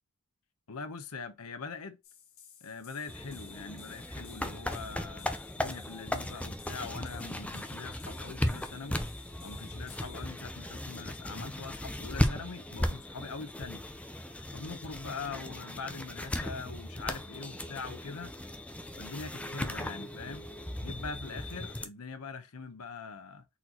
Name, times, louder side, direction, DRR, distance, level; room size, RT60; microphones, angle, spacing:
voice 1, 0.7-2.0 2.6-5.3 5.6-9.1 9.4-13.8 14.5-18.3 19.0-20.5 20.8-23.4, left 4 dB, 90° left, 0.9 m, -42 dB
sound 1, 2.0-10.3, left 8 dB, 70° left, 1.4 m, -56 dB
sound 2, 3.1-21.9, left 1 dB, 5° left, 0.5 m, -37 dB
4.2 x 4.1 x 2.9 m
head